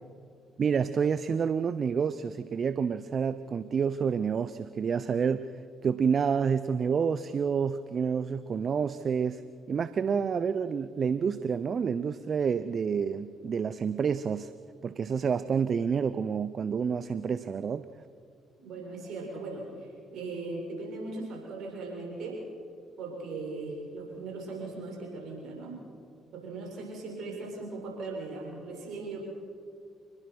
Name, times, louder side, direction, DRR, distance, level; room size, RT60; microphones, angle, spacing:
voice 1, 0.6-5.5 5.8-9.4 9.7-14.5 14.8-17.9, right 6 dB, 50° right, 14 dB, 0.7 m, -28 dB
voice 2, 18.6-22.4 23.0-25.8 26.3-29.2, right 3 dB, 65° right, -1 dB, 7.1 m, -38 dB
26.5 x 20.5 x 6.2 m, 2.2 s
hypercardioid pair, 50°, 0 cm